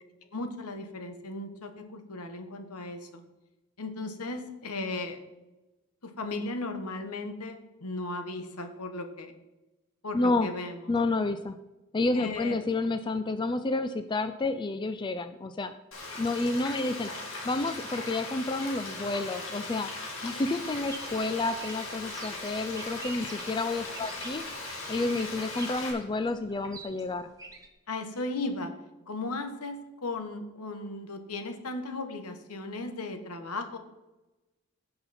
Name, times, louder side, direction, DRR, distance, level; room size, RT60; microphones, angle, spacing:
voice 1, 0.3-3.2 3.8-5.2 6.0-9.3 10.0-10.8 12.1-12.6 23.1-23.3 27.9-28.7 29.1-33.8, left 2 dB, 85° left, 6 dB, 1.2 m, -36 dB
voice 2, 10.1-10.5 10.9-11.6 11.9-15.7 16.2-17.1 17.4-19.9 20.2-24.4 24.9-27.3, left 2 dB, 20° left, 10 dB, 0.3 m, -30 dB
Frying (food), 15.9-25.9, left 2 dB, 65° left, 2.3 m, -39 dB
sound 1, 20.7-27.7, right 3 dB, 15° right, 1.1 m, -47 dB
16.0 x 5.7 x 4.2 m, 1.1 s
head